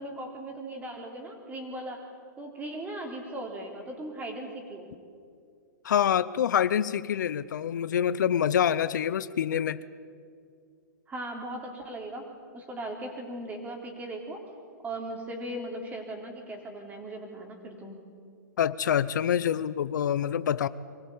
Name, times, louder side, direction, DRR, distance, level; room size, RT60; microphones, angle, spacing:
voice 1, 0.0-2.1 2.4-4.9 11.1-12.3 12.5-14.4 14.8-18.0, right 1 dB, 15° right, 2 dB, 3.5 m, -38 dB
voice 2, 5.8-9.8 18.6-20.7, left 9 dB, 75° left, 16 dB, 0.7 m, -26 dB
23.5 x 15.5 x 8.7 m, 2.2 s
hypercardioid pair, 135°, 10 cm